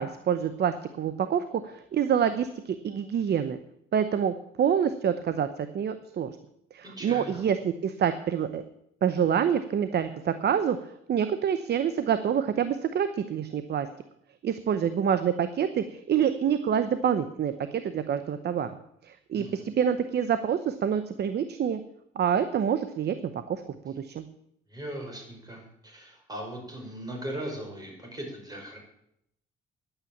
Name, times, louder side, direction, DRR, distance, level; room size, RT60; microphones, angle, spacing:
voice 1, 0.0-3.6 3.9-6.3 6.7-8.6 9.0-10.8 11.1-13.9 14.4-17.5 17.8-18.8 19.0-21.8 22.2-23.1 23.5-24.2, right 8 dB, 55° right, 11 dB, 0.8 m, -27 dB
voice 2, 6.8-7.4 19.3-19.7 24.7-28.8, right 1 dB, 20° right, 1 dB, 5.2 m, -39 dB
10.5 x 8.9 x 8.5 m, 0.77 s
cardioid pair, 90°, 20 cm